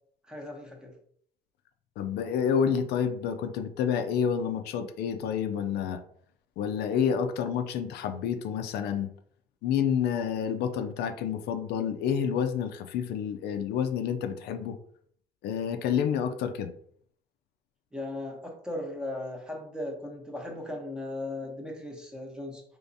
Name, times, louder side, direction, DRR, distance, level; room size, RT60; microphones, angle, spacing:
voice 1, 0.3-1.0 17.9-22.6, left 1 dB, 5° right, 2 dB, 0.8 m, -37 dB
voice 2, 2.0-6.0 6.6-9.1 9.6-14.8 15.4-16.7, left 7 dB, 75° left, 7 dB, 0.4 m, -29 dB
3.4 x 3.0 x 2.6 m, 0.62 s
cardioid pair, 110°, 17 cm